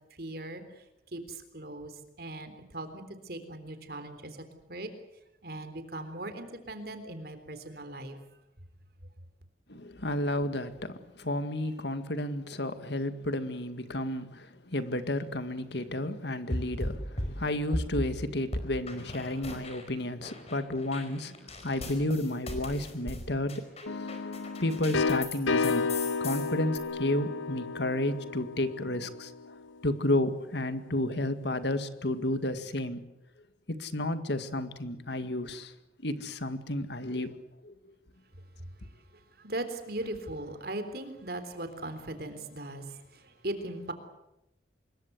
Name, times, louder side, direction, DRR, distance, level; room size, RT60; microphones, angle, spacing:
voice 1, 0.2-0.6 1.1-1.9 2.2-4.4 4.7-4.9 5.4-8.2 39.1-43.9, right 1 dB, 55° right, 9 dB, 3.6 m, -39 dB
voice 2, 9.7-25.9 26.2-29.6 29.8-33.0 33.7-35.7 36.0-37.3 37.6-37.7, left 1 dB, 65° left, 10 dB, 2.0 m, -32 dB
sound 1, 16.5-18.1 18.5-19.9 20.2-25.4 25.6-26.8, left 1 dB, 35° left, 5.0 m, -37 dB
sound 2, 23.9-29.5, left 4 dB, 90° left, 0.8 m, -32 dB
25.5 x 22.5 x 8.1 m, 0.90 s
head